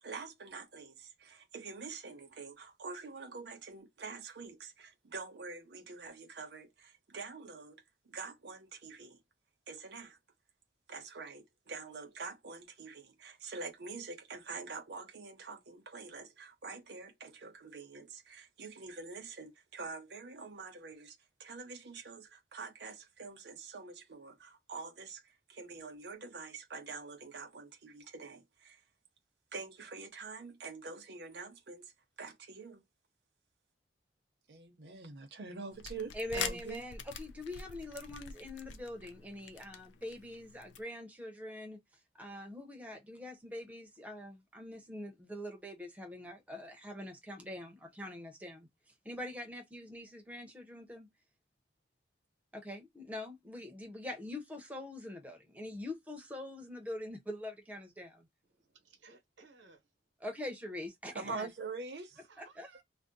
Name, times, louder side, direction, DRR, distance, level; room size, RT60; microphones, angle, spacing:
voice 1, 0.0-9.2 9.7-10.2 10.9-28.8 29.5-31.9 32.2-32.8 34.5-36.8 61.1-62.2, right 4 dB, 60° right, 0.6 m, -46 dB
sound 1, 35.7-40.8, left 7 dB, 80° left, 0.4 m, -44 dB
voice 2, 36.1-41.8 42.2-48.7 49.0-51.1 52.5-58.3 60.2-61.5 62.4-62.7, left 1 dB, 10° right, 0.7 m, -44 dB
voice 3, 58.5-59.9 62.2-62.8, right 4 dB, 90° right, 0.9 m, -60 dB
2.6 x 2.1 x 3.8 m
head